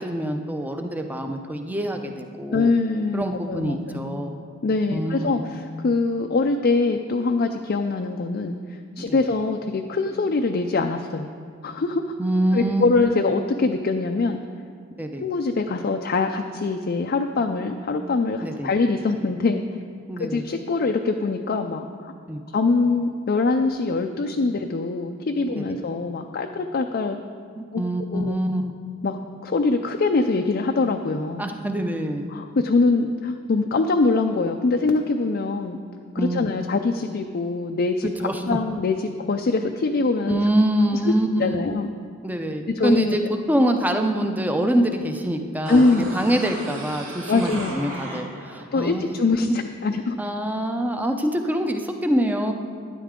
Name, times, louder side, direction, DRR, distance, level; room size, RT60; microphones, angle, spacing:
voice 1, 0.0-2.7 3.1-4.4 4.9-5.3 9.0-9.3 12.2-12.8 15.0-15.2 18.4-18.7 20.1-20.4 22.3-22.4 25.6-25.8 27.6-28.6 31.4-32.2 36.2-36.5 38.2-38.6 40.3-41.4 42.2-45.8 46.1-49.1 49.4-49.6 50.2-52.5, right 1 dB, 10° right, 5 dB, 0.6 m, -25 dB
voice 2, 2.5-3.2 3.5-4.2 4.6-11.3 11.6-12.0 12.5-14.4 15.2-19.6 20.2-22.1 22.5-27.2 27.7-27.8 28.1-28.4 29.0-31.5 32.3-35.8 36.1-40.4 41.0-41.1 41.4-41.9 42.7-43.2 45.7-46.1 47.3-47.9 48.7-50.2, left 3 dB, 45° left, 4 dB, 0.4 m, -23 dB
sound 1, 45.7-48.6 49.0-49.1, right 1 dB, 70° right, 2.7 m, -35 dB
12.0 x 10.0 x 3.7 m, 2.3 s
head